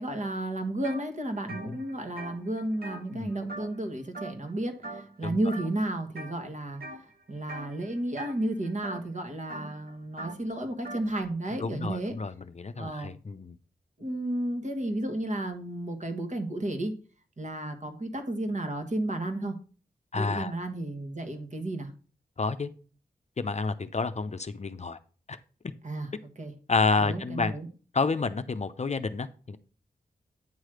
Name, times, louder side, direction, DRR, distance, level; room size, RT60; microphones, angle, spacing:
voice 1, 0.0-12.1 12.8-13.1 14.0-16.9 17.4-19.6 20.1-21.9 25.8-26.5 27.0-27.7, right 1 dB, 45° right, 5 dB, 1.6 m, -33 dB
sound 1, 0.8-1.0 1.4-3.9 4.1-4.5 4.8-5.2 5.5-6.3 6.8-7.1 7.4-11.1, right 2 dB, 65° right, 1.5 m, -42 dB
voice 2, 11.6-13.5 20.1-20.5 22.4-22.7 23.4-25.0 25.3-25.4 26.7-27.5 27.9-29.6, left 4 dB, 40° left, 10 dB, 0.6 m, -29 dB
9.2 x 3.2 x 6.3 m, 0.39 s
cardioid pair, 45°, 17 cm